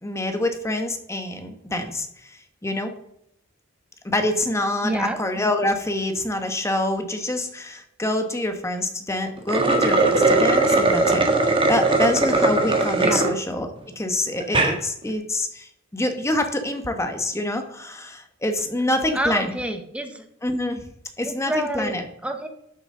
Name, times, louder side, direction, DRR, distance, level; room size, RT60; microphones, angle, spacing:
voice 1, 0.0-2.9 4.0-13.7 14.0-19.5 20.4-20.8 21.2-22.0, left 1 dB, 15° left, 6 dB, 1.1 m, -26 dB
voice 2, 4.8-5.2 13.0-13.3 19.1-20.2 21.2-22.5, right 1 dB, 5° right, 6 dB, 1.1 m, -28 dB
sound 1, 9.4-13.3 13.8-13.9 14.4-14.8, right 2 dB, 25° right, 1.4 m, -19 dB
12.5 x 7.1 x 3.8 m, 0.76 s
head